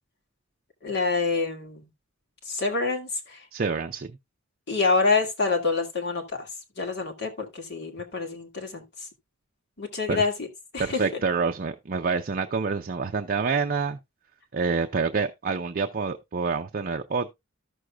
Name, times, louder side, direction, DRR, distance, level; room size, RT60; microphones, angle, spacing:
voice 1, 0.8-1.9 2.5-3.4 4.7-6.5 6.8-8.8 9.8-10.3 10.7-11.0, left 4 dB, 55° left, 2.3 m, -26 dB
voice 2, 3.5-4.1 10.1-10.2 10.8-14.0 14.5-17.3, right 4 dB, 45° right, 0.5 m, -27 dB
14.0 x 6.4 x 2.3 m
head